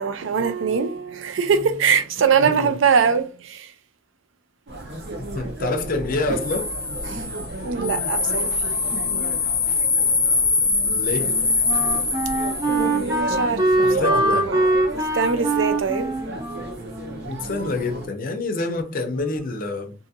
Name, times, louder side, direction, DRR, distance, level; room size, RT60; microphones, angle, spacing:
voice 1, 0.0-3.7 7.1-7.3 7.6-8.6 12.7-16.1, right 6 dB, 75° right, 0.4 m, -23 dB
voice 2, 2.4-2.7 5.3-6.7 10.8-11.3 13.8-14.5 17.2-19.9, left 3 dB, 45° left, 0.5 m, -27 dB
sound 1, 4.7-18.1, right 2 dB, 60° right, 0.9 m, -33 dB
sound 2, 6.4-13.2, left 4 dB, 15° left, 0.7 m, -23 dB
Wind instrument woodwind instrument, 10.7-18.0, right 1 dB, 20° right, 0.6 m, -24 dB
2.6 x 2.5 x 2.6 m
head